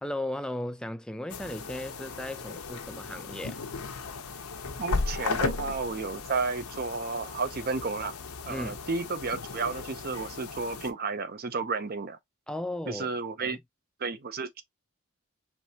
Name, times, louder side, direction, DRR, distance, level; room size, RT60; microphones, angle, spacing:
voice 1, 0.0-3.6 8.5-8.8 12.5-13.1 13.4-13.6, left 1 dB, 5° left, 0.4 m, -36 dB
sound 1, 1.3-10.9, left 3 dB, 90° left, 0.8 m, -36 dB
voice 2, 4.8-8.1 8.5-12.2 12.9-13.6 14.0-14.6, right 4 dB, 45° right, 0.6 m, -32 dB
4.6 x 3.2 x 2.8 m
head